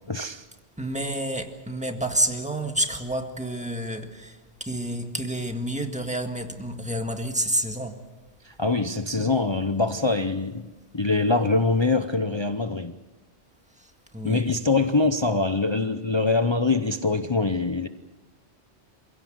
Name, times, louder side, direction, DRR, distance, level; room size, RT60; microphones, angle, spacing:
voice 1, 0.1-0.4 8.4-10.7 10.9-12.9 14.2-17.9, left 3 dB, 30° left, 0.7 m, -24 dB
voice 2, 0.8-8.0 13.8-14.5 15.0-15.1, right 1 dB, 5° right, 1.8 m, -29 dB
27.0 x 16.5 x 7.8 m
omnidirectional pair, 1.2 m